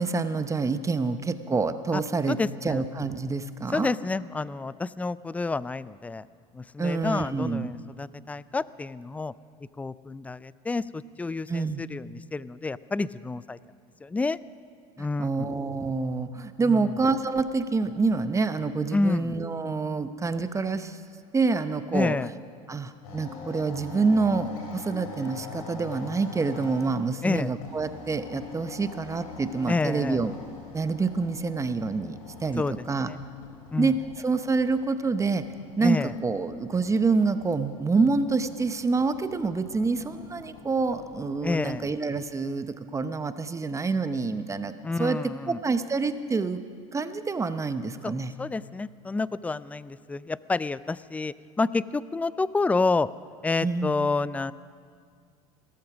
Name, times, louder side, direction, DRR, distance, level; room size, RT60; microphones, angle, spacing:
voice 1, 0.0-3.9 6.8-7.7 11.5-11.8 15.0-21.0 21.3-22.2 22.7-30.3 30.7-33.1 33.8-35.4 35.8-44.7 45.0-45.2 45.5-46.6 46.9-48.3 53.6-53.9, right 4 dB, 15° right, 11 dB, 0.8 m, -27 dB
voice 2, 2.3-2.8 3.7-6.2 6.5-9.3 9.8-13.6 14.0-14.4 15.0-15.5 16.7-17.0 18.9-19.4 21.9-22.3 27.2-27.5 29.7-30.2 32.6-32.7 33.0-33.2 33.7-33.9 35.8-36.1 41.4-41.9 44.8-45.6 48.0-53.1 53.4-54.5, left 3 dB, 10° left, 18 dB, 0.3 m, -29 dB
sound 1, 23.0-41.9, left 3 dB, 80° left, 3.5 m, -44 dB
17.5 x 13.0 x 6.0 m, 2.1 s
hypercardioid pair, 95°, 17 cm